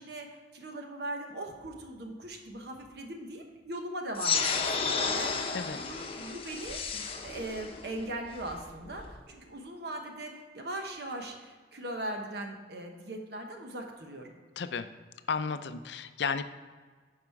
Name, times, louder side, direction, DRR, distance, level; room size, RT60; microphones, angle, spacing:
voice 1, 0.0-14.3, right 1 dB, 65° right, 3 dB, 1.0 m, -40 dB
sound 1, 4.2-9.2, left 5 dB, 30° left, 0.8 m, -32 dB
voice 2, 5.5-6.0 14.6-14.9 15.3-16.4, left 5 dB, 70° left, 11 dB, 0.5 m, -33 dB
11.0 x 5.0 x 4.7 m, 1.5 s
head